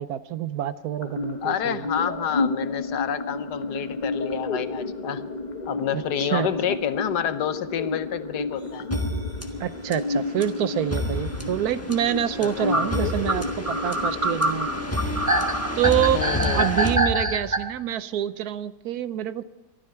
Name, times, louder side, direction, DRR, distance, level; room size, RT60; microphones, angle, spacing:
voice 1, 0.0-1.9 5.9-6.5 9.6-14.7 15.8-16.2 16.5-19.4, right 11 dB, 70° right, 14 dB, 1.1 m, -26 dB
sound 1, 1.0-17.0, left 3 dB, 30° left, 0.9 m, -32 dB
voice 2, 1.4-5.3 5.7-8.9 11.4-11.6 12.4-12.9 16.1-16.7, left 9 dB, 80° left, 12 dB, 1.4 m, -29 dB
sound 2, 8.9-17.7, left 1 dB, 10° left, 1.1 m, -31 dB
sound 3, 10.4-10.5 11.9-12.0 12.7-17.6, right 1 dB, 15° right, 0.9 m, -25 dB
23.0 x 13.0 x 4.6 m, 1.1 s
omnidirectional pair, 1.8 m